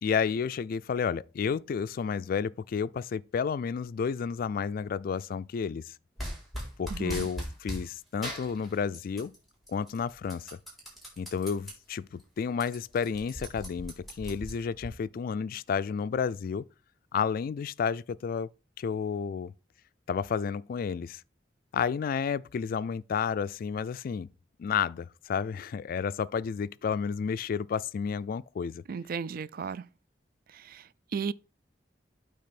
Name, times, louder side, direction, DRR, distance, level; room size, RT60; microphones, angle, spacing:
voice 1, 0.0-5.9 6.8-9.3 9.7-10.5 11.2-16.7 17.1-18.5 18.8-19.5 20.1-21.2 21.7-24.3 24.6-28.8, left 6 dB, 50° left, 0.3 m, -31 dB
sound 1, 6.2-7.9 8.2-9.4 9.7-11.7 12.2-12.3 12.5-14.9, equal, ahead, 3.7 m, -39 dB
voice 2, 6.9-7.3 28.9-29.9 30.5-31.3, right 6 dB, 55° right, 0.4 m, -35 dB
8.6 x 3.4 x 5.8 m
head